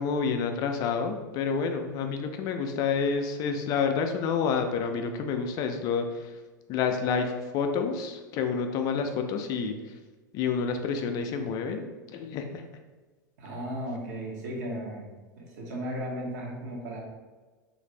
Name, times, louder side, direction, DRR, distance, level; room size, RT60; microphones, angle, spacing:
voice 1, 0.0-6.4 6.7-10.0 10.3-12.6, left 5 dB, 35° left, 6 dB, 0.4 m, -29 dB
voice 2, 13.4-15.1 15.4-17.0, equal, 55° right, -1 dB, 0.8 m, -35 dB
3.1 x 2.5 x 3.1 m, 1.3 s
figure-of-eight pair, 85°, 11 cm